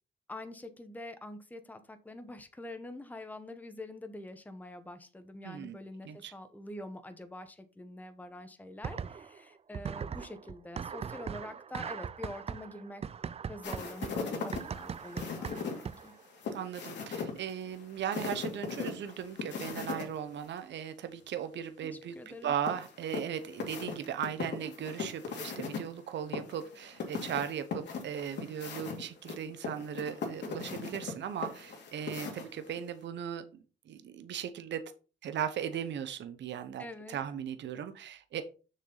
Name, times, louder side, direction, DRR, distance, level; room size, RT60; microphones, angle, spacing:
voice 1, 0.3-13.0 13.5-16.1 21.8-22.5 36.8-37.2, left 1 dB, 10° left, 1.0 m, -45 dB
voice 2, 5.4-5.8 6.0-6.3 16.5-34.9 35.2-38.4, right 9 dB, 65° right, 0.9 m, -37 dB
sound 1, 8.8-9.4 9.7-16.2, right 7 dB, 30° right, 0.4 m, -40 dB
sound 2, 13.6-20.1 20.4-20.5 22.7-25.8 26.3-32.8, left 5 dB, 65° left, 2.5 m, -39 dB
6.7 x 6.3 x 4.0 m
cardioid pair, 90°, 20 cm